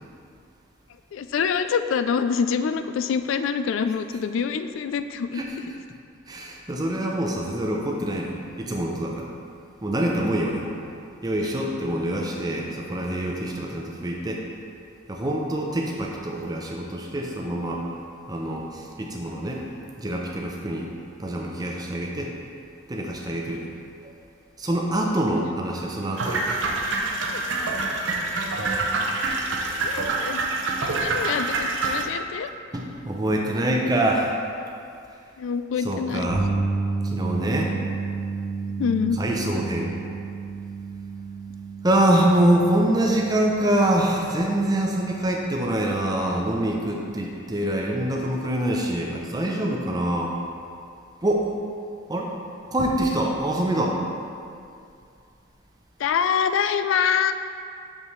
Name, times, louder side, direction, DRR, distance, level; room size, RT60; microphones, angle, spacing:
voice 1, 1.1-5.4 27.2-27.7 29.7-30.4 30.8-32.5 35.4-36.3 38.8-39.2 56.0-57.3, left 6 dB, 75° left, 10 dB, 0.3 m, -25 dB
voice 2, 6.3-9.3 9.8-10.8 11.2-14.5 15.1-17.9 18.3-19.6 20.0-20.9 21.2-22.3 22.9-23.7 24.6-26.4 32.7-34.4 35.8-36.4 37.0-37.7 39.2-39.9 41.8-50.3 51.2-51.5 52.1-52.3 52.7-54.0, right 1 dB, 20° right, 0 dB, 0.6 m, -25 dB
sound 1, 26.2-32.0, right 3 dB, 65° right, 0.6 m, -26 dB
sound 2, 36.3-48.5 48.9-49.1 51.3-51.4, right 4 dB, 50° left, 1.3 m, -32 dB
6.8 x 5.6 x 3.1 m, 2.4 s
head